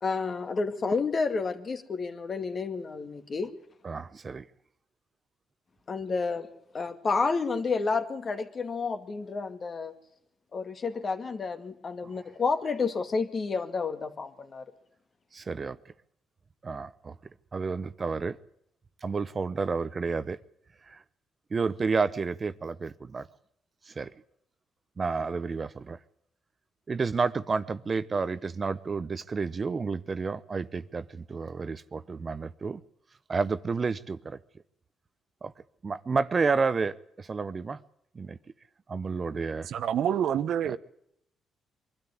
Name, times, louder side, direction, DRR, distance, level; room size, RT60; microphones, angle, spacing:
voice 1, 0.0-3.5 5.9-6.5 6.7-9.9 10.5-14.7, left 4 dB, 40° left, 2.2 m, -30 dB
voice 2, 3.8-4.4 12.0-12.1 15.3-15.8 16.6-17.1 17.5-18.4 19.0-20.4 20.9-21.0 21.5-23.3 23.9-24.1 25.0-26.0 26.9-32.8 33.3-34.4 35.4-35.5 35.8-37.8 38.1-38.4 38.9-39.7 40.6-40.8, right 4 dB, 35° right, 0.8 m, -30 dB
voice 3, 39.7-40.8, right 9 dB, 70° right, 1.0 m, -27 dB
23.0 x 13.0 x 9.7 m
cardioid pair, 90°, 0 cm